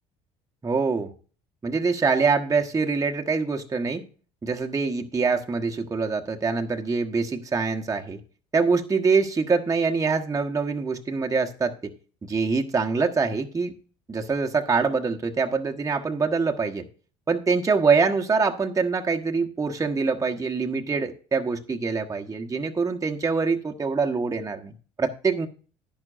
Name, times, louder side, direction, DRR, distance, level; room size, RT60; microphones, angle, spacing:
voice 1, 0.6-1.1 1.6-4.0 4.4-8.2 8.5-11.9 12.3-13.7 14.1-16.9 17.3-25.5, right 4 dB, 20° right, 2 dB, 1.3 m, -24 dB
11.5 x 11.0 x 2.6 m, 0.37 s
hypercardioid pair, 60°, 16 cm